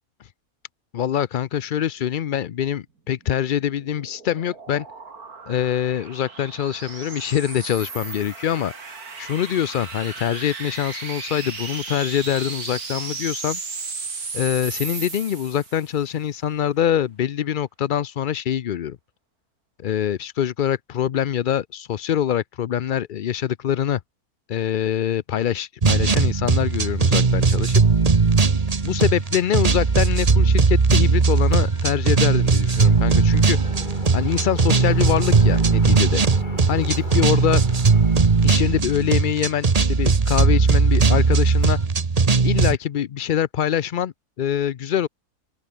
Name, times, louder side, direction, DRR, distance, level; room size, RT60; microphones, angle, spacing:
voice 1, 0.9-4.9 5.5-8.7 9.2-13.6 14.3-19.0 19.8-24.0 24.5-27.8 28.8-33.6 34.1-36.2 36.7-37.6 38.4-41.8 42.4-45.1, left 10 dB, 70° left, 0.4 m, -24 dB
sound 1, 3.5-16.0, right 4 dB, 85° right, 3.2 m, -35 dB
sound 2, 25.8-42.8, right 4 dB, 30° right, 1.1 m, -18 dB
sound 3, 26.0-41.9, left 3 dB, 30° left, 2.7 m, -42 dB
open air
omnidirectional pair, 1.5 m